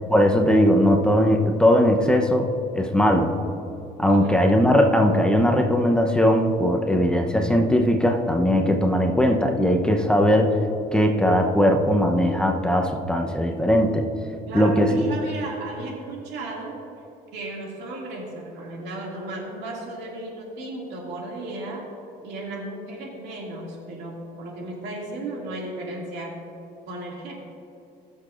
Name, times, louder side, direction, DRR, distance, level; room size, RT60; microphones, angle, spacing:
voice 1, 0.1-2.5 2.7-3.3 4.0-10.6 10.9-14.1 14.5-14.9, equal, 5° left, 2 dB, 0.8 m, -19 dB
voice 2, 14.5-16.8 17.3-21.9 22.2-26.4 26.9-27.3, right 2 dB, 80° right, -2 dB, 2.3 m, -34 dB
18.5 x 6.8 x 2.5 m, 2.8 s
cardioid pair, 110°, 17 cm